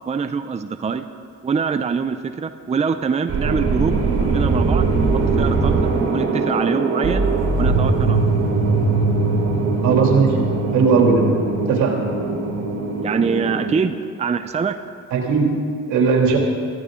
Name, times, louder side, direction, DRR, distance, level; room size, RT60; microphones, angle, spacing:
voice 1, 0.1-1.0 1.4-4.9 5.1-7.3 7.5-8.4 13.0-14.8, right 5 dB, 20° right, 9 dB, 0.6 m, -24 dB
sound 1, 3.3-13.8, right 3 dB, 55° right, 4.0 m, -20 dB
voice 2, 9.8-10.3 10.7-11.2 11.7-12.0 15.1-15.5 15.9-16.4, right 5 dB, 80° right, 0 dB, 2.7 m, -17 dB
19.0 x 14.0 x 3.8 m, 2.2 s
supercardioid pair, 85°, 30 cm